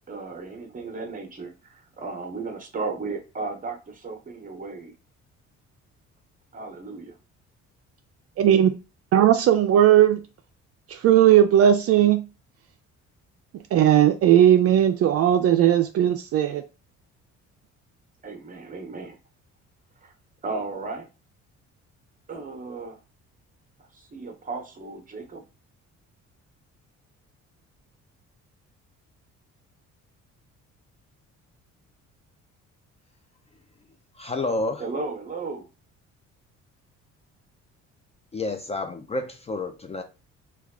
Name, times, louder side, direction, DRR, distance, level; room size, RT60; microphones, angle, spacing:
voice 1, 0.1-4.9 6.5-7.1 18.2-19.2 20.0-20.1 20.4-21.1 22.3-23.0 23.9-25.4 34.8-35.7, right 3 dB, 30° right, 0.9 m, -35 dB
voice 2, 8.4-8.7 9.1-10.2 10.9-12.2 13.7-16.6, right 11 dB, 55° right, 0.4 m, -17 dB
voice 3, 34.2-34.8 38.3-40.0, left 2 dB, 20° left, 0.4 m, -29 dB
3.3 x 2.3 x 3.6 m
cardioid pair, 125°, 29 cm